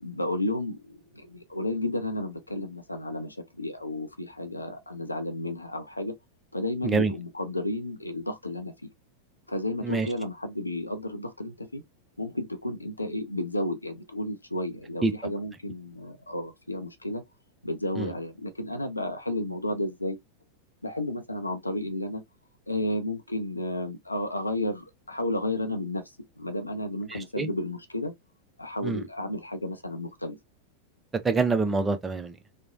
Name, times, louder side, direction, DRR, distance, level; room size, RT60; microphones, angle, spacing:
voice 1, 0.0-6.2 6.5-8.9 9.5-11.8 12.2-17.2 17.6-20.2 20.8-22.2 22.7-26.0 26.4-28.1 28.6-30.4, left 1 dB, 85° left, 0.5 m, -32 dB
voice 2, 31.2-32.3, right 3 dB, 15° right, 0.5 m, -25 dB
3.0 x 2.1 x 2.5 m
figure-of-eight pair, 90°, 0 cm